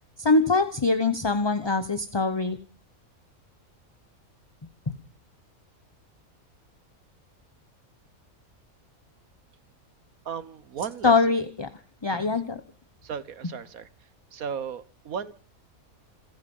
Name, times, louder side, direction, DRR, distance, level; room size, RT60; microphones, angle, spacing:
voice 1, 0.2-2.6 11.0-11.7 12.0-12.6, left 3 dB, 20° left, 11 dB, 0.9 m, -23 dB
voice 2, 10.2-11.2 12.1-12.2 13.0-13.9 14.3-15.3, right 7 dB, 75° right, 15 dB, 1.4 m, -35 dB
27.5 x 9.5 x 5.4 m, 0.40 s
omnidirectional pair, 1.5 m